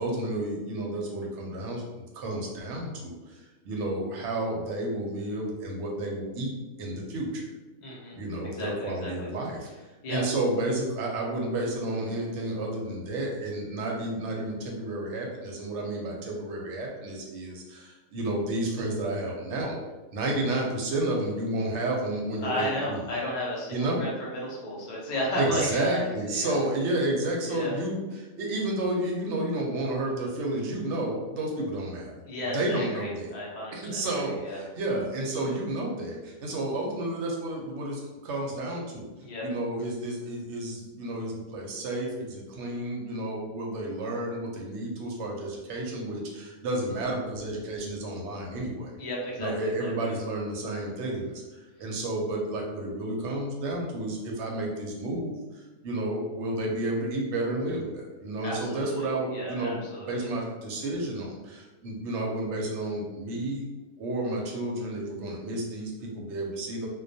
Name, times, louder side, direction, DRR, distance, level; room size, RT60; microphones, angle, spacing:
voice 1, 0.0-1.9 2.1-6.5 6.8-7.5 8.1-9.7 10.1-19.8 20.1-23.0 23.7-24.0 25.4-32.2 32.5-33.3 33.7-39.1 39.4-49.0 49.4-51.4 51.8-59.8 60.1-63.7 64.0-66.9, right 1 dB, 65° right, -1 dB, 0.8 m, -31 dB
voice 2, 7.8-8.2 8.4-9.3 10.0-10.3 22.4-26.6 27.5-27.8 32.3-34.6 39.2-39.4 49.0-50.1 58.4-60.3, equal, 65° left, -5 dB, 0.4 m, -33 dB
2.2 x 2.2 x 2.6 m, 1.1 s
omnidirectional pair, 1.5 m